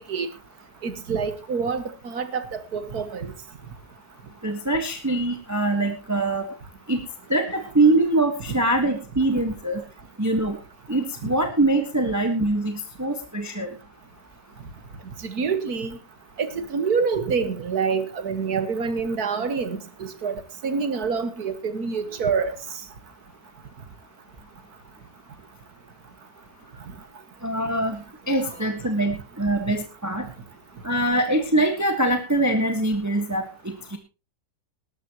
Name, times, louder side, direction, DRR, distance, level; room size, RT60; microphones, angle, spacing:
voice 1, 0.8-3.3 8.5-8.6 15.2-16.0 16.4-22.6 28.4-28.6, right 5 dB, 65° right, 1.9 m, -27 dB
voice 2, 4.4-6.5 6.9-7.0 7.3-9.8 10.2-10.6 10.9-13.8 27.4-28.0 28.3-30.3 30.8-34.0, right 2 dB, 10° right, 1.3 m, -23 dB
19.0 x 12.5 x 2.9 m
omnidirectional pair, 1.8 m